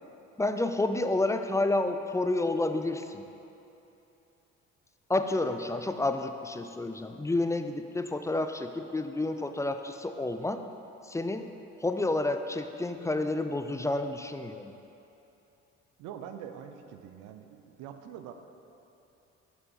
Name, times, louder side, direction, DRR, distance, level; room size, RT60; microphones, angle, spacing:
voice 1, 0.4-3.3 5.1-10.6 11.0-11.5 11.8-14.7, left 2 dB, 10° left, 8 dB, 0.3 m, -30 dB
voice 2, 16.0-18.3, right 9 dB, 80° right, 7 dB, 0.6 m, -44 dB
6.6 x 5.4 x 4.5 m, 2.9 s
supercardioid pair, 65°, 31 cm